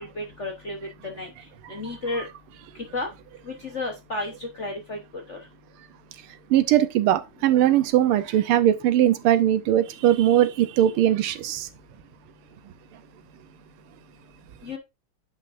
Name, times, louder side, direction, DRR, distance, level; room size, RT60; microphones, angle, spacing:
voice 1, 0.2-0.8 1.0-1.3 1.7-2.3 2.9-3.1 3.7-5.0 5.3-5.4 14.6-14.8, left 2 dB, 45° left, 1.0 m, -31 dB
voice 2, 6.5-11.7, right 12 dB, 80° right, 1.6 m, -20 dB
9.5 x 5.8 x 2.5 m
omnidirectional pair, 2.4 m